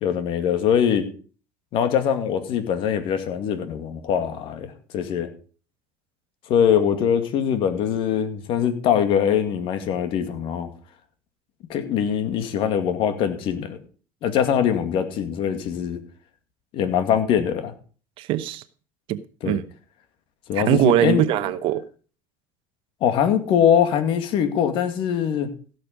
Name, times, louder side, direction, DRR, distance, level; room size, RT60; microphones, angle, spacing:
voice 1, 0.0-1.1 1.7-5.3 6.5-10.7 11.7-13.8 14.2-16.0 16.7-17.7 19.4-19.6 20.5-21.2 23.0-25.5, left 8 dB, 60° left, 2.2 m, -22 dB
voice 2, 18.2-18.6 19.1-19.6 20.5-21.9, right 13 dB, 60° right, 0.9 m, -22 dB
16.0 x 6.7 x 5.2 m
hypercardioid pair, 70°, 10 cm